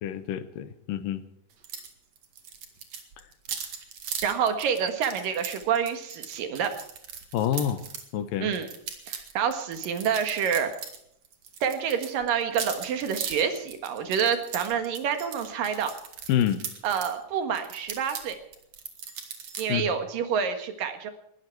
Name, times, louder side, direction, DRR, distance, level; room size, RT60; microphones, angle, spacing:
voice 1, 0.0-1.2 7.3-7.9 8.1-8.5 16.3-16.6 19.7-19.9, left 10 dB, 90° left, 12 dB, 2.7 m, -27 dB
sound 1, 1.6-1.9 2.2-8.1 8.5-11.0 11.2-17.1 17.5-19.6, right 7 dB, 55° right, 3.0 m, -39 dB
voice 2, 4.2-6.7 8.4-8.7 9.1-10.7 11.6-15.9 16.8-18.4 19.6-21.1, right 7 dB, 90° right, 7 dB, 3.4 m, -28 dB
20.0 x 14.5 x 4.7 m, 0.72 s
omnidirectional pair, 3.8 m